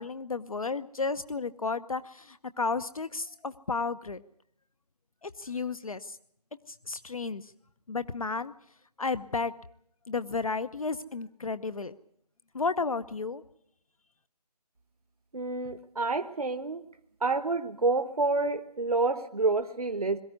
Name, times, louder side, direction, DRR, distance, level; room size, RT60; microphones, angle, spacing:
voice 1, 0.0-4.2 5.2-6.2 6.7-7.5 7.9-8.5 9.0-9.5 10.1-12.0 12.5-13.4, left 4 dB, 60° left, 12 dB, 0.8 m, -33 dB
voice 2, 15.3-16.8 17.2-20.2, right 3 dB, 65° right, 7 dB, 1.1 m, -28 dB
22.0 x 14.0 x 9.6 m, 0.72 s
figure-of-eight pair, 160°, 20 cm